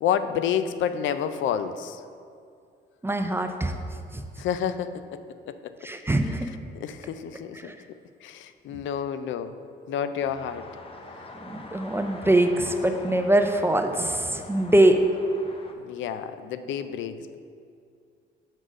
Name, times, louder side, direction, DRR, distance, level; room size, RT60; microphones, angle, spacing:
voice 1, 0.0-2.0 4.4-5.2 5.5-5.7 6.8-7.7 8.2-9.5 9.9-10.7 15.8-17.4, left 8 dB, 75° left, 11 dB, 0.4 m, -29 dB
voice 2, 3.0-3.7 4.1-4.2 5.8-6.5 7.6-7.8 8.7-8.8 11.4-15.1, right 1 dB, 10° right, 6 dB, 0.5 m, -23 dB
sound 1, 10.2-15.7, left 3 dB, 30° left, 0.7 m, -44 dB
6.3 x 4.0 x 6.4 m, 2.3 s
cardioid pair, 90°, 20 cm